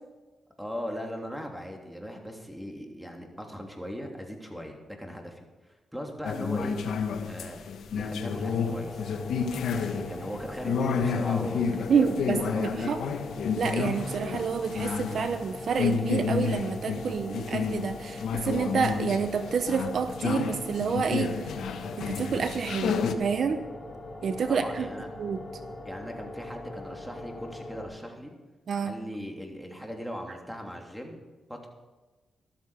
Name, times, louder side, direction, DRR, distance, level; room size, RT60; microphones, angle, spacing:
voice 1, 0.6-6.8 7.3-7.6 7.9-9.1 9.7-12.2 12.5-13.1 24.5-25.1 25.8-28.3 28.8-31.2 31.5-31.7, equal, ahead, 1 dB, 3.2 m, -39 dB
sound 1, 6.2-23.1, left 6 dB, 85° left, 1.1 m, -30 dB
sound 2, 8.2-27.9, left 2 dB, 25° left, 5.0 m, -41 dB
voice 2, 11.9-13.0 13.6-21.5 22.0-23.6 24.2-24.9 25.2-25.4 28.7-29.0, right 6 dB, 70° right, 10 dB, 0.8 m, -28 dB
13.5 x 13.0 x 5.1 m, 1.2 s
cardioid pair, 65°, 0 cm